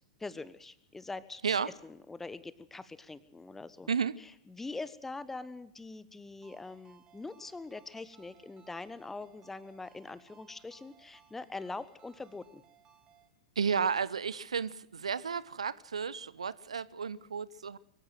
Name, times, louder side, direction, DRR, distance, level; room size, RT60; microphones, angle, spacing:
voice 1, 0.2-1.4 1.8-3.9 4.2-12.6, left 3 dB, 10° left, 1.2 m, -43 dB
Ringtone, 6.4-13.3, right 9 dB, 25° right, 3.3 m, -63 dB
voice 2, 13.6-17.8, right 6 dB, 70° right, 0.9 m, -32 dB
23.5 x 15.5 x 7.7 m
figure-of-eight pair, 95°, 3 cm